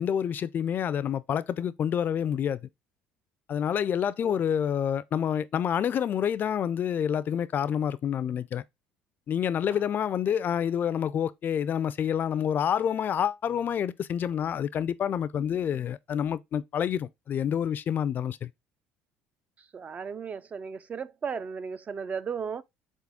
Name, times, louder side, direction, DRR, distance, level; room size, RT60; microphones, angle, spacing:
voice 1, 0.0-2.6 3.5-8.6 9.3-18.5, left 8 dB, 40° left, 0.4 m, -28 dB
voice 2, 19.7-22.6, right 6 dB, 30° right, 0.3 m, -35 dB
4.0 x 3.7 x 3.5 m
supercardioid pair, 95°, 5 cm